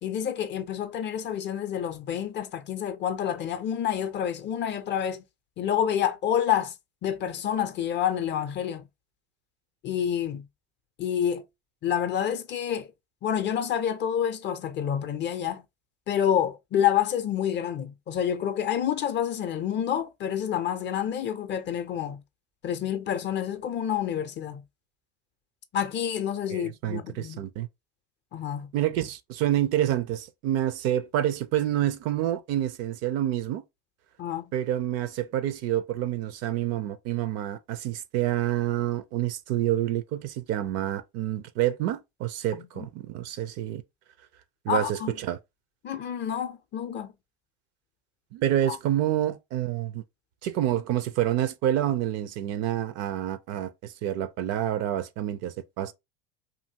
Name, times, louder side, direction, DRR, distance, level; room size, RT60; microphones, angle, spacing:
voice 1, 0.0-5.2 5.6-6.7 7.0-8.9 9.8-10.4 11.0-11.4 11.8-12.9 13.2-15.6 16.1-22.2 22.6-24.6 25.7-27.4 28.3-28.7 34.2-34.5 42.5-42.9 44.7-45.2 45.8-47.1 48.7-48.8, left 9 dB, 35° left, 0.5 m, -28 dB
voice 2, 26.5-27.7 28.7-33.6 34.5-43.8 44.6-45.4 48.3-50.0 50.4-55.9, right 12 dB, 50° right, 0.5 m, -28 dB
2.6 x 2.6 x 2.8 m
hypercardioid pair, 80°, 33 cm